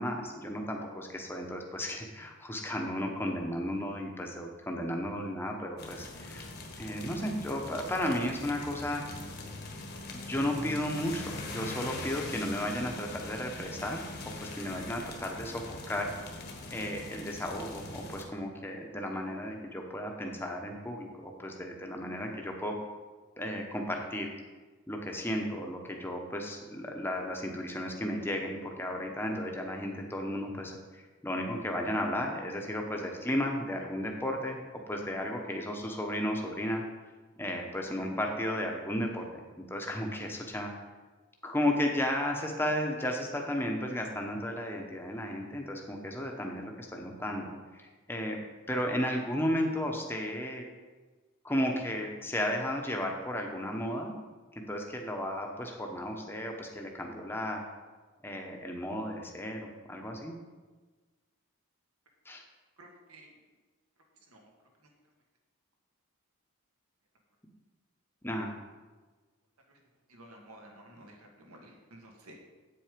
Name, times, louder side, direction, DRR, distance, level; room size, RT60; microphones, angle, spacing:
voice 1, 0.0-6.5 6.8-9.0 10.1-14.0 14.4-16.1 16.7-22.8 23.4-24.3 24.9-34.6 34.9-36.8 37.4-40.7 41.4-48.4 48.7-50.6 51.4-54.1 54.5-57.6 58.2-59.6 59.9-60.3 62.2-62.4 68.2-68.5, left 1 dB, 10° left, 1 dB, 1.0 m, -34 dB
sound 1, 5.8-18.2, left 2 dB, 45° left, 1.3 m, -42 dB
voice 2, 62.8-63.3 64.3-64.5 69.7-69.8 70.1-72.5, right 1 dB, 80° right, 1 dB, 1.9 m, -53 dB
8.5 x 7.6 x 5.1 m, 1.3 s
head